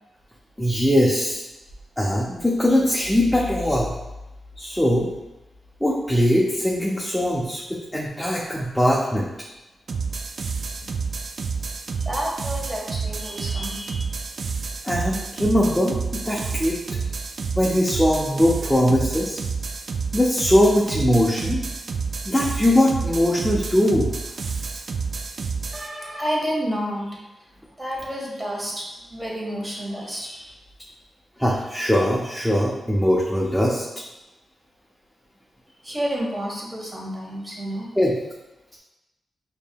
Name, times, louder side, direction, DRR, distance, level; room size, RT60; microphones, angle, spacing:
voice 1, 0.6-1.4 2.0-3.9 4.6-5.1 5.8-9.3 14.8-15.9 16.2-16.8 17.6-19.4 20.1-21.6 22.2-24.1 31.4-33.8 38.0-38.1, equal, 5° left, -4 dB, 0.6 m, -21 dB
sound 1, 9.9-25.9, right 5 dB, 60° right, 0.3 m, -29 dB
voice 2, 12.0-14.1 25.7-27.3 27.8-30.5 35.8-37.9, equal, 20° right, -3 dB, 1.2 m, -30 dB
5.1 x 2.8 x 2.2 m, 0.99 s
cardioid pair, 75°, 0 cm